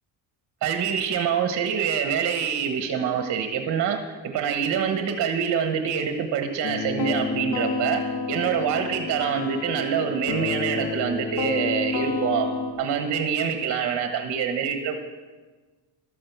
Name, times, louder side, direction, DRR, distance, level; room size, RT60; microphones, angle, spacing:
voice 1, 0.6-8.0 8.3-12.5 12.8-15.0, right 7 dB, 45° right, 5 dB, 1.1 m, -25 dB
sound 1, 6.6-12.7, left 4 dB, 70° left, 1.8 m, -29 dB
12.0 x 8.8 x 7.2 m, 1.3 s
cardioid pair, 155°, 42 cm